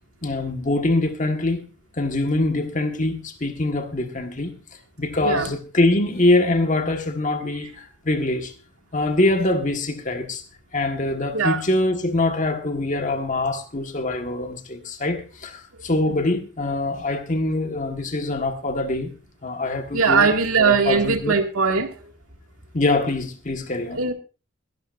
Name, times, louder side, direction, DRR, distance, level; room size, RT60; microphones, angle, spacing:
voice 1, 0.2-1.6 2.0-4.5 5.0-8.5 8.9-10.4 10.7-19.1 19.4-21.4 22.7-24.0, left 2 dB, 35° left, 1.5 m, -24 dB
voice 2, 19.9-21.9 23.9-24.1, right 5 dB, 80° right, 2.0 m, -20 dB
21.5 x 11.5 x 2.5 m
head